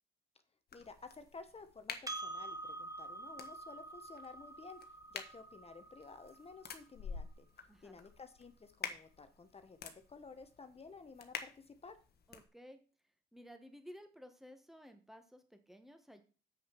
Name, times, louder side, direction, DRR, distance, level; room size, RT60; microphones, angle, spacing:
sound 1, 0.7-12.5, left 6 dB, 50° left, 1.4 m, -50 dB
voice 1, 0.7-4.8 5.1-7.5 7.8-12.0, left 4 dB, 30° left, 9 dB, 1.2 m, -53 dB
Percussion, 2.1-6.9, right 2 dB, 15° right, 1.4 m, -47 dB
voice 2, 7.7-8.0 12.3-12.8 13.3-16.2, equal, ahead, 7 dB, 1.7 m, -55 dB
7.8 x 6.4 x 6.1 m, 0.37 s
cardioid pair, 90°, 20 cm